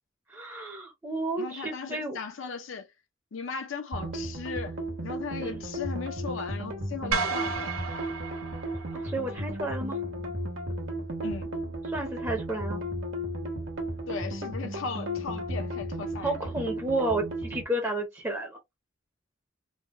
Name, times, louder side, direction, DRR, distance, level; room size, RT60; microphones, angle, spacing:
voice 1, 0.3-2.2 5.4-5.6 8.9-10.0 11.9-12.8 16.2-18.6, right 2 dB, 10° right, 0.6 m, -31 dB
voice 2, 1.4-2.9 3.3-4.8 5.0-7.7 11.2-11.5 14.1-16.4, left 5 dB, 65° left, 0.5 m, -37 dB
sound 1, 3.9-17.6, equal, 65° right, 1.1 m, -34 dB
sound 2, 7.1-9.5, right 5 dB, 90° right, 0.6 m, -33 dB
3.4 x 2.1 x 2.4 m
head